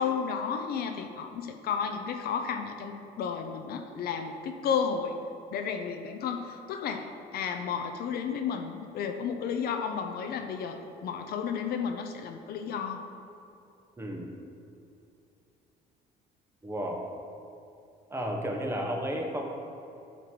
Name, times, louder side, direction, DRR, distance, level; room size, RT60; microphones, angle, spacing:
voice 1, 0.0-5.2 5.5-13.0, left 6 dB, 65° left, 5 dB, 0.6 m, -32 dB
voice 2, 14.0-14.3 16.6-17.0 18.1-19.4, equal, 15° right, 1 dB, 0.9 m, -32 dB
9.0 x 3.1 x 5.9 m, 2.6 s
cardioid pair, 110°, 17 cm